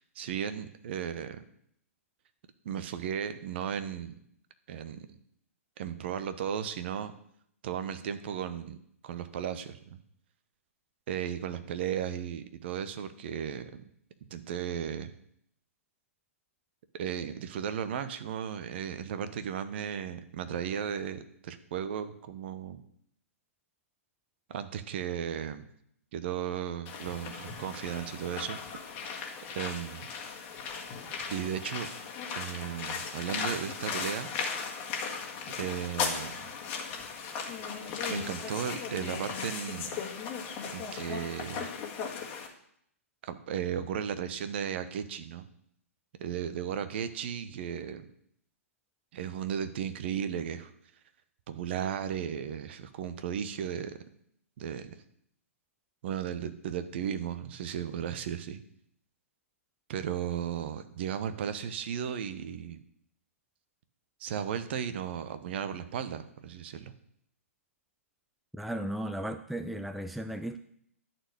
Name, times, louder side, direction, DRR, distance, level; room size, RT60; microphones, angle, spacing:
voice 1, 0.0-1.4 2.6-4.1 4.7-5.1 5.8-7.1 7.6-8.8 9.0-10.0 11.1-13.8 14.3-15.1 16.9-22.8 24.5-25.7 26.1-28.6 29.5-30.1 31.3-31.9 32.3-34.3 35.6-36.4 38.1-40.0 40.6-41.7 43.2-45.5 46.2-48.1 49.1-50.7 51.5-54.0 54.6-55.0 56.0-58.6 59.9-62.8 64.2-66.9, right 8 dB, 45° right, 11 dB, 0.9 m, -35 dB
sound 1, 26.9-42.5, left 6 dB, 30° left, 1.7 m, -37 dB
voice 2, 68.5-70.6, right 1 dB, ahead, 8 dB, 0.4 m, -35 dB
11.0 x 4.5 x 8.1 m, 0.70 s
figure-of-eight pair, 120°, 8 cm